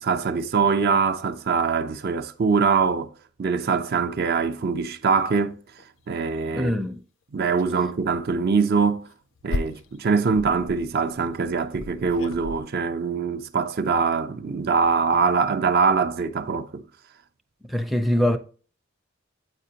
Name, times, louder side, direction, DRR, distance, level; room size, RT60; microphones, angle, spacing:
voice 1, 0.0-3.1 3.4-5.6 6.1-6.7 7.3-9.0 9.4-16.8, right 5 dB, 55° right, 0.5 m, -23 dB
sound 1, 5.2-5.3 5.8-5.9 6.3-6.7 7.5-7.7 8.0-8.2 8.8-12.6, left 2 dB, 70° left, 0.4 m, -35 dB
voice 2, 6.5-7.0 17.6-18.4, equal, ahead, 0.5 m, -23 dB
7.7 x 4.9 x 2.8 m
head